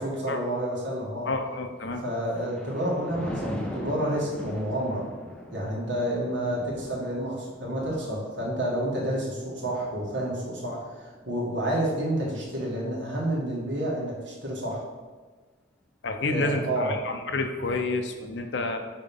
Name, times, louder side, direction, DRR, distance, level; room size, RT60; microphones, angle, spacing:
voice 1, 0.0-1.3 2.0-5.1 5.5-14.8 16.3-16.9, right 1 dB, 75° right, -3 dB, 1.8 m, -29 dB
voice 2, 1.2-2.0 16.0-18.8, left 3 dB, 65° left, 5 dB, 0.7 m, -29 dB
Thunder, 2.0-13.5 14.0-14.3, equal, 5° left, 0.6 m, -41 dB
5.7 x 4.0 x 5.4 m, 1.4 s
head